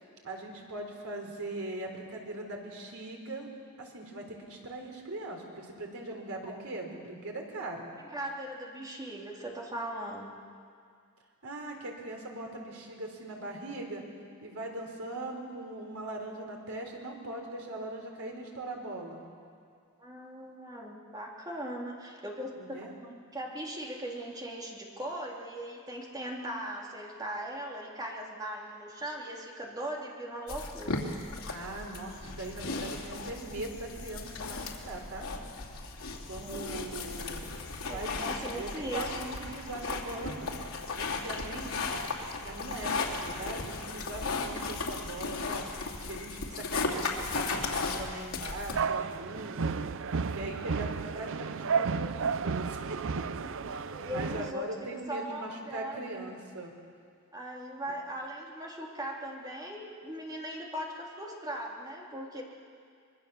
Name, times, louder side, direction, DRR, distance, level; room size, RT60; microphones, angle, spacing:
voice 1, 0.2-3.5 3.8-7.9 11.4-14.0 14.4-19.2 22.6-22.9 31.5-35.3 36.3-37.4 37.9-40.6 41.0-42.0 42.4-45.7 46.0-49.8 50.2-56.7, right 2 dB, 80° right, 1 dB, 4.0 m, -40 dB
voice 2, 8.1-10.3 20.0-31.0 36.3-36.9 37.9-39.0 53.9-56.0 57.3-62.4, right 1 dB, 20° right, -1 dB, 3.0 m, -39 dB
sound 1, 30.5-48.8, left 3 dB, 80° left, 2.7 m, -36 dB
sound 2, 48.7-54.5, right 5 dB, 60° right, 0.6 m, -32 dB
25.0 x 22.0 x 7.0 m, 2.2 s
head